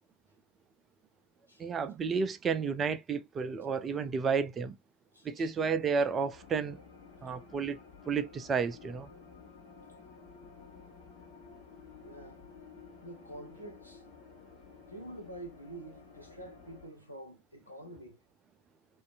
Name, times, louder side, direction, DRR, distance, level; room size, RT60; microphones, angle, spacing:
voice 1, 1.6-4.7 5.2-6.8 7.2-7.8 8.1-9.1, right 5 dB, 20° right, 0.4 m, -31 dB
voice 2, 5.1-5.5 12.0-12.4 13.0-14.0 14.9-18.2, right 1 dB, 85° left, 0.9 m, -47 dB
sound 1, 6.3-16.9, left 5 dB, 50° left, 1.8 m, -53 dB
3.1 x 2.6 x 2.4 m
figure-of-eight pair, 90°, 0 cm